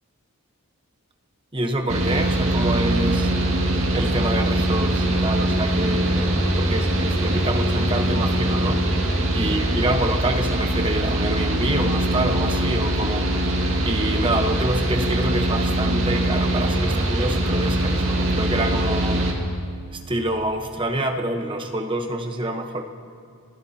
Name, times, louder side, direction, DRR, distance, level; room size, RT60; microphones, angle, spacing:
voice 1, 1.5-3.3 3.9-8.8 9.3-13.3 13.8-19.2 20.1-22.8, right 1 dB, 25° right, 4 dB, 1.0 m, -27 dB
Mechanical fan, 1.9-19.3, right 1 dB, 65° right, 2.1 m, -22 dB
26.5 x 16.5 x 2.9 m, 2.4 s
head